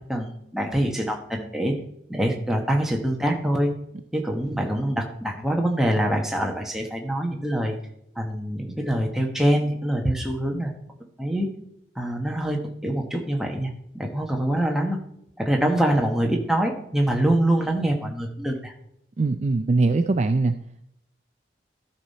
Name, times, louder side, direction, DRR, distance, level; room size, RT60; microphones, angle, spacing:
voice 1, 0.0-1.8 2.1-3.7 4.1-7.7 8.2-10.7 11.2-11.5 12.0-12.6 12.8-15.0 15.4-18.7, right 1 dB, ahead, 1 dB, 1.2 m, -24 dB
voice 2, 19.2-20.5, right 3 dB, 35° right, 8 dB, 0.4 m, -21 dB
13.0 x 5.6 x 4.2 m, 0.76 s
head